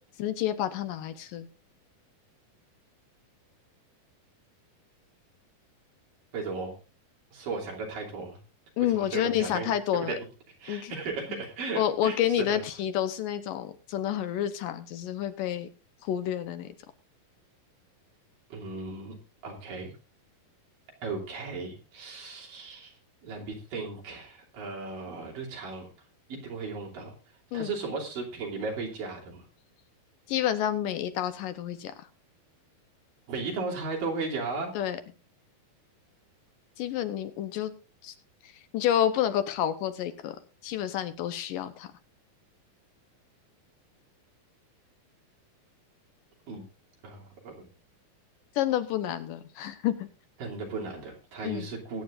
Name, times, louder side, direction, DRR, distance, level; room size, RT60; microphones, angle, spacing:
voice 1, 0.2-1.5 8.8-10.2 10.7-10.9 11.3-11.4 11.7-15.7 16.0-16.7 27.5-27.7 30.3-31.9 34.8-35.0 36.8-37.7 38.0-38.1 38.7-40.4 40.6-41.9 48.6-50.1 51.4-51.7, left 11 dB, 75° left, 10 dB, 2.4 m, -29 dB
voice 2, 6.3-6.7 7.3-8.4 8.8-10.3 10.6-12.6 18.5-19.1 19.4-20.0 21.0-25.8 26.3-27.1 27.5-29.4 33.3-34.7 46.5-46.6 47.0-47.6 50.4-52.0, right 4 dB, 65° right, -1 dB, 4.6 m, -36 dB
21.5 x 9.4 x 2.5 m, 0.31 s
omnidirectional pair, 4.2 m